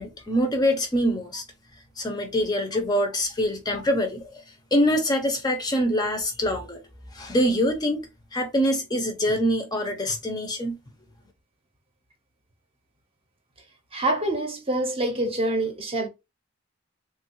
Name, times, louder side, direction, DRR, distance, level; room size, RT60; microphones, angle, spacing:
voice 1, 0.0-1.4 2.0-4.4 4.7-6.8 7.1-10.8, equal, 20° left, 0.5 m, -24 dB
voice 2, 13.9-16.1, right 1 dB, 30° right, 0.7 m, -26 dB
3.3 x 2.3 x 2.8 m
head